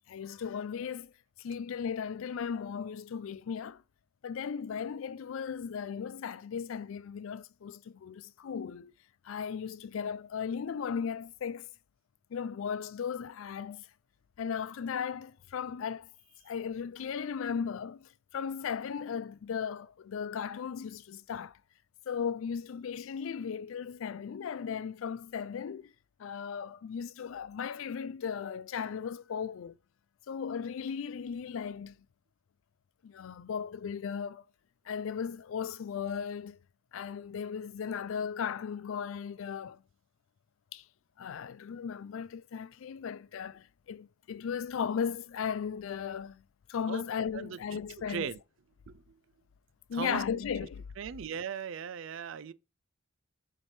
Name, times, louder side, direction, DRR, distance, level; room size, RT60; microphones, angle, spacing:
voice 1, 0.1-1.1 1.4-3.8 4.2-8.9 9.3-11.7 12.3-13.9 14.4-16.1 16.4-21.5 22.1-25.9 26.2-29.8 30.3-31.9 33.0-34.4 34.9-36.6 36.9-39.8 40.7-40.8 41.2-46.4 46.7-48.3 49.9-50.8, left 7 dB, 70° left, 0.3 m, -36 dB
voice 2, 47.3-47.8 48.1-48.4 48.9-49.0 49.9-50.2 51.0-52.5, right 7 dB, 65° right, 0.4 m, -38 dB
7.4 x 3.3 x 4.3 m
head